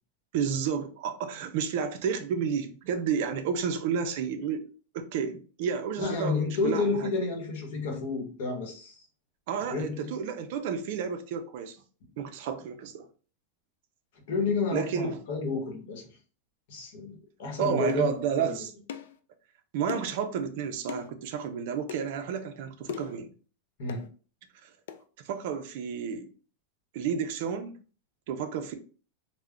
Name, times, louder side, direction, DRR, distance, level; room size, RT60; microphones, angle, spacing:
voice 1, 0.3-4.6 4.9-7.1 9.5-11.8 12.2-13.0 14.7-15.2 17.6-18.7 19.7-23.3 24.6-24.7 25.2-26.3 26.9-27.7 28.3-28.7, right 7 dB, 50° right, 0.4 m, -31 dB
voice 2, 6.0-9.0 9.7-10.2 14.3-16.1 16.7-18.1 18.4-18.5 23.8-24.1, left 4 dB, 55° left, 0.9 m, -30 dB
sound 1, 17.9-18.1 18.9-19.2 19.9-20.2 20.9-21.1 21.9-22.1 22.9-23.2 23.9-24.1 24.9-25.0, left 8 dB, 75° left, 0.3 m, -39 dB
2.3 x 2.1 x 3.6 m
supercardioid pair, 165°, 0 cm